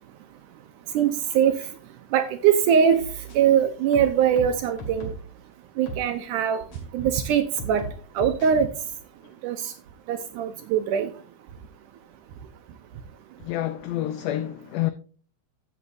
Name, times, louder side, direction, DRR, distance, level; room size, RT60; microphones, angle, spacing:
voice 1, 1.0-1.5 2.1-3.0 3.4-5.1 5.8-6.6 6.9-7.8 8.2-8.7 9.4-9.7 10.1-11.1, right 8 dB, 80° right, 1.9 m, -22 dB
sound 1, 3.0-3.6 3.9-5.3 5.9-6.1 6.7-6.8 7.6-8.5, right 2 dB, 45° left, 2.8 m, -37 dB
voice 2, 13.4-14.9, left 13 dB, 80° left, 1.9 m, -28 dB
13.0 x 8.3 x 2.6 m
omnidirectional pair, 4.2 m